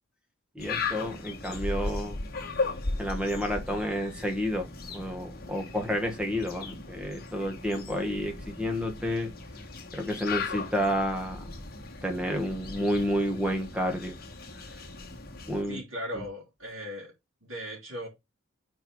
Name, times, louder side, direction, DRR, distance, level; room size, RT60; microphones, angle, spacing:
voice 1, 0.5-2.2 3.0-4.7 4.9-9.3 9.9-11.5 12.0-14.2 15.5-15.8, equal, 5° right, 1.3 m, -30 dB
sound 1, 0.6-15.6, left 3 dB, 45° left, 1.5 m, -37 dB
voice 2, 15.7-17.1 17.4-18.1, equal, 65° right, 3.1 m, -38 dB
5.4 x 4.5 x 4.5 m
head